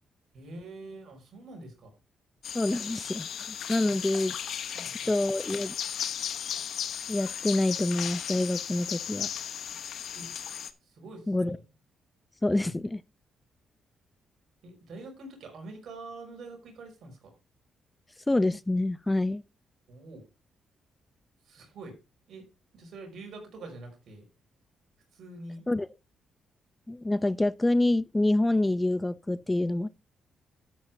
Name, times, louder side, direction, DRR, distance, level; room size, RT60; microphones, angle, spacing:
voice 1, 0.3-1.9 3.8-3.9 4.7-5.2 10.1-10.3 10.8-11.6 12.5-12.7 14.6-17.3 19.9-20.2 21.5-22.0 22.3-22.5 22.7-24.3 25.1-25.7, right 2 dB, 70° right, 5.4 m, -45 dB
sound 1, 2.4-10.7, left 9 dB, 70° left, 1.0 m, -35 dB
voice 2, 2.5-4.3 5.1-5.7 7.1-9.3 11.3-11.6 12.4-13.0 18.3-19.4 25.7-25.9 26.9-29.9, left 2 dB, 20° left, 0.6 m, -27 dB
12.5 x 9.5 x 2.7 m
supercardioid pair, 50°, 0 cm